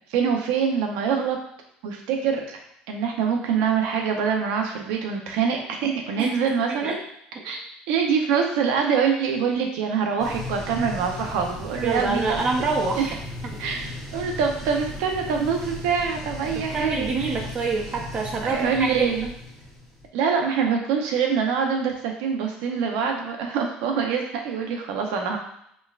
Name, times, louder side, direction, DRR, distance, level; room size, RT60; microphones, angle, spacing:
voice 1, 0.1-1.4 1.8-2.6 2.9-7.0 7.4-7.6 7.9-12.4 13.6-17.1 18.4-19.3 20.1-25.4, right 6 dB, 90° right, 2 dB, 0.7 m, -25 dB
voice 2, 6.2-7.0 11.8-13.2 13.5-13.6 16.5-19.1, right 4 dB, 30° right, 1 dB, 0.7 m, -26 dB
sound 1, 10.2-20.1, left 2 dB, 5° left, 1.0 m, -36 dB
5.1 x 2.3 x 2.4 m, 0.74 s
cardioid pair, 130°, 3 cm